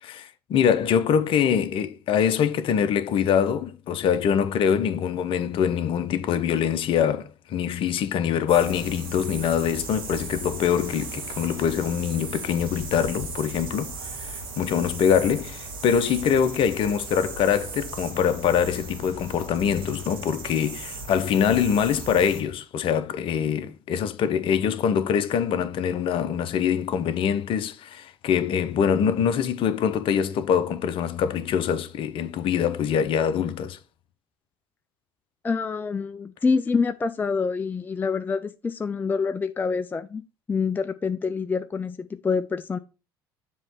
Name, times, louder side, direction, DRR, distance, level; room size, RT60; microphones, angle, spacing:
voice 1, 0.0-33.8, left 8 dB, 50° left, 0.8 m, -24 dB
sound 1, 8.5-22.4, right 3 dB, 80° right, 1.5 m, -37 dB
voice 2, 35.4-40.2 40.5-42.8, left 5 dB, 15° left, 0.4 m, -26 dB
7.3 x 3.1 x 6.0 m
hypercardioid pair, 65°, 12 cm